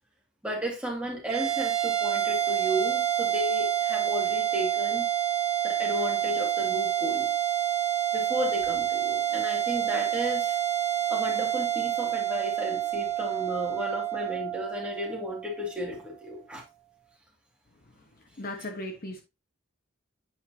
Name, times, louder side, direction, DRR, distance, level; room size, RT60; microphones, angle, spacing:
voice 1, 0.4-5.0 5.6-7.3 8.1-10.6 11.1-16.6 18.6-18.7, equal, 5° right, 2.4 m, -34 dB
sound 1, 1.3-15.9, right 11 dB, 35° right, 0.9 m, -28 dB
voice 2, 18.4-19.2, left 1 dB, 50° left, 1.1 m, -36 dB
8.5 x 4.9 x 2.8 m
head